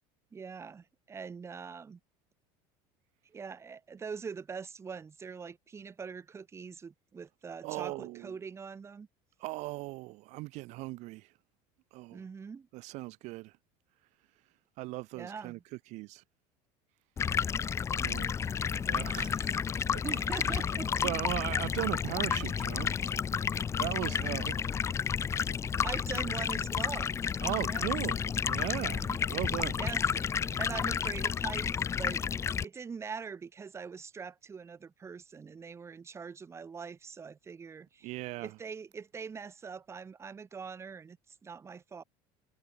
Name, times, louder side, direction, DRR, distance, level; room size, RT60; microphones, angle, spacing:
voice 1, 0.3-2.0 3.2-9.1 12.1-12.7 15.1-15.6 19.6-19.7 20.0-21.1 25.8-27.1 27.6-27.9 28.7-29.2 29.8-30.3 30.6-31.7 32.0-32.2 32.6-42.0, right 5 dB, 20° right, 2.4 m, -43 dB
voice 2, 7.6-8.4 9.4-11.3 11.9-12.3 12.7-13.5 14.8-15.6 15.9-16.2 18.0-18.3 18.9-19.5 19.9-20.0 20.5-20.6 21.0-22.9 23.8-24.6 27.4-28.2 28.4-29.8 38.0-38.6, right 21 dB, 60° right, 2.6 m, -38 dB
Stream, 17.2-32.6, left 7 dB, 20° left, 0.5 m, -31 dB
cardioid pair, 135°, 13 cm